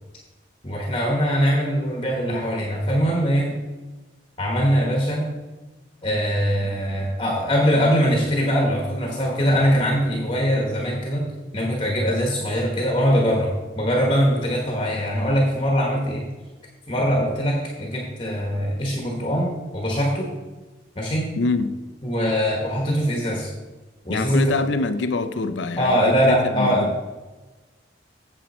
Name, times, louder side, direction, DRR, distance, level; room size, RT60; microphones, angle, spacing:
voice 1, 0.6-3.6 4.4-5.3 6.0-11.3 11.5-13.5 13.7-16.3 16.9-20.3 20.9-21.3 22.0-23.5 24.0-24.5 25.8-27.1, equal, 25° left, -1 dB, 1.3 m, -22 dB
voice 2, 21.4-21.7 24.1-26.9, left 3 dB, 75° left, 10 dB, 0.5 m, -25 dB
8.5 x 7.1 x 4.3 m, 1.2 s
head